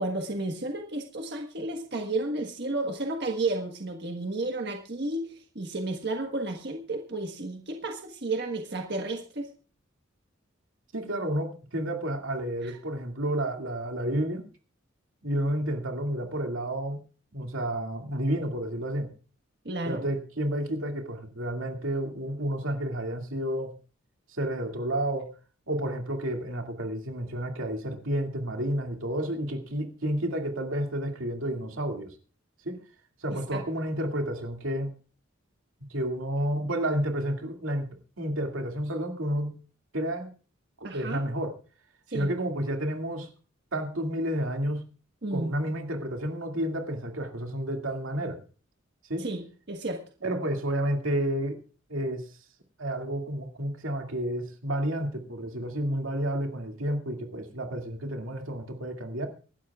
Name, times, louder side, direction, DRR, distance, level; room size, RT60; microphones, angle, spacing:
voice 1, 0.0-9.5 12.6-12.8 19.6-20.0 33.5-33.6 40.8-41.2 42.1-42.3 45.2-45.5 49.2-50.0, right 2 dB, 55° right, 3 dB, 1.5 m, -32 dB
voice 2, 10.9-14.4 15.2-17.0 17.3-19.1 19.9-23.7 24.3-25.3 25.7-32.2 32.7-32.8 33.2-34.9 35.9-37.9 38.2-39.5 39.9-40.3 40.8-41.5 42.1-43.3 43.7-44.8 45.3-48.4 49.1-49.3 50.2-51.6 51.9-52.2 52.8-59.3, right 1 dB, 85° right, 3 dB, 2.3 m, -30 dB
25.0 x 12.5 x 2.4 m, 0.37 s
head